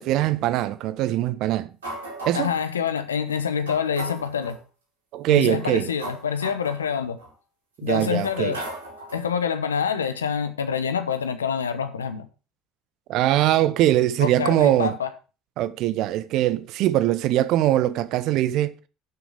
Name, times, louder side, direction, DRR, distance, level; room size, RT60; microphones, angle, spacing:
voice 1, 0.0-1.7 2.3-2.5 5.1-5.9 7.8-8.6 13.1-14.9 15.6-18.7, right 13 dB, 55° right, 0.8 m, -22 dB
sound 1, 1.8-2.6 3.3-3.4 3.7-4.6 5.4-7.3 7.9-9.3, right 2 dB, 80° right, 4.5 m, -37 dB
voice 2, 2.3-4.6 5.3-7.2 7.8-8.6 9.1-12.3 14.2-15.1, left 7 dB, 80° left, 1.1 m, -26 dB
11.0 x 7.2 x 4.9 m
figure-of-eight pair, 60°, 0 cm